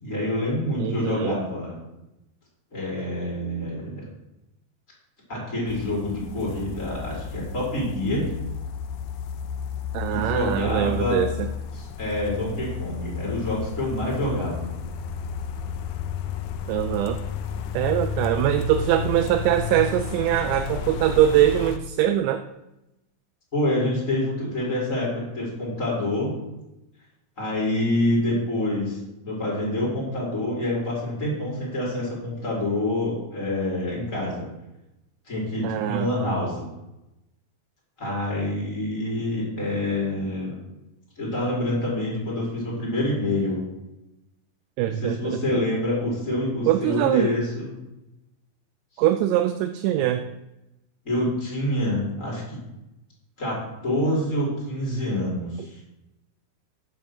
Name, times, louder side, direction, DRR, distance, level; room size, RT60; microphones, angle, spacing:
voice 1, 0.0-1.8 2.7-4.1 5.3-8.3 10.1-11.2 11.7-14.7 23.5-26.4 27.4-29.0 29.2-34.5 35.3-36.7 38.0-40.5 41.2-43.6 44.8-47.7 49.0-49.1 51.0-52.6 53.4-55.8, left 1 dB, 15° left, -5 dB, 3.9 m, -27 dB
voice 2, 0.8-1.4 9.9-11.5 16.7-17.2 17.7-22.4 35.6-36.1 44.8-45.6 46.7-47.3 49.0-50.2, right 12 dB, 85° right, 8 dB, 2.7 m, -22 dB
sound 1, 5.7-21.8, left 6 dB, 90° left, 2.3 m, -32 dB
8.1 x 6.5 x 7.5 m, 0.92 s
omnidirectional pair, 5.3 m